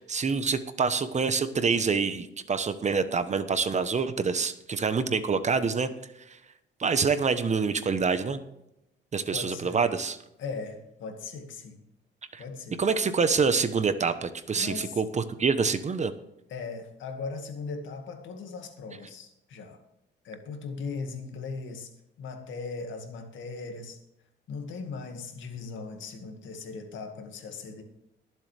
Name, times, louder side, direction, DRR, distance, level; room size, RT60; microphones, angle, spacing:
voice 1, 0.0-5.9 6.8-8.4 9.1-10.2 12.3-12.4 12.8-16.1, right 5 dB, 35° right, 11 dB, 1.0 m, -26 dB
voice 2, 9.3-9.9 10.4-11.8 12.4-12.7 14.6-15.0 16.5-19.8 20.2-21.9 22.2-24.0 24.5-27.8, left 4 dB, 75° left, 4 dB, 2.1 m, -38 dB
22.0 x 7.6 x 3.4 m, 0.86 s
cardioid pair, 90°, 20 cm